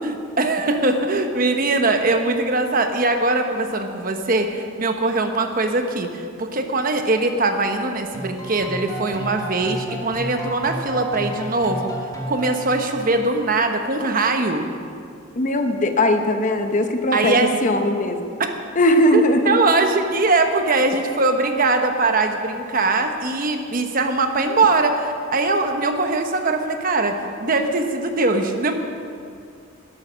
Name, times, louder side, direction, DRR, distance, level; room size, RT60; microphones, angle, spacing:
voice 1, 0.0-11.9 12.3-14.6 17.1-17.6 18.4-18.5 19.1-28.8, right 3 dB, 45° right, 5 dB, 1.0 m, -21 dB
sound 1, 8.1-13.3, equal, 20° left, 1.9 m, -32 dB
voice 2, 15.4-18.3 18.8-19.6, left 1 dB, 40° left, 6 dB, 0.9 m, -19 dB
12.0 x 12.0 x 6.2 m, 2.4 s
head